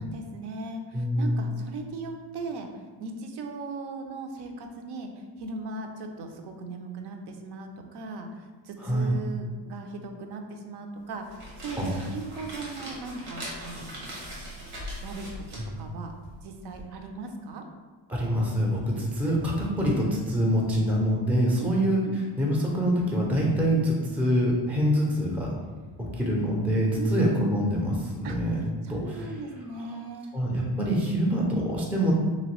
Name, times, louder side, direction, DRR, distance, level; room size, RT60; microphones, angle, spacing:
voice 1, 0.0-2.7 3.0-14.7 15.0-15.3 15.8-16.1 16.4-17.6 19.2-19.4 21.6-22.2 26.9-27.1 28.2-28.4 28.8-30.3, right 3 dB, 55° right, 4 dB, 0.5 m, -38 dB
voice 2, 0.9-1.5 8.8-9.1 11.8-11.9 15.6-15.7 18.1-25.5 26.0-28.6 28.9-29.3 29.8-29.9 30.3-32.1, equal, 5° right, -2 dB, 0.4 m, -25 dB
sound 1, 11.1-16.8, equal, 85° right, 1.3 m, -41 dB
2.9 x 2.6 x 3.0 m, 1.4 s
cardioid pair, 95°, 47 cm